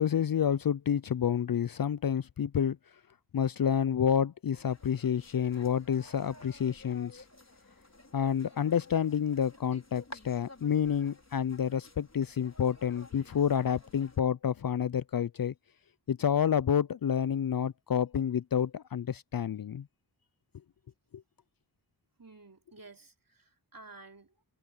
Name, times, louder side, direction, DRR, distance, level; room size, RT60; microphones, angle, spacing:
voice 1, 0.0-2.8 3.3-7.2 8.1-15.5 16.1-19.9, left 8 dB, 55° left, 0.5 m, -29 dB
sound 1, 4.5-14.2, left 2 dB, 35° left, 4.2 m, -53 dB
voice 2, 22.2-24.4, right 3 dB, 50° right, 3.2 m, -53 dB
wide cardioid pair, 50°, 44 cm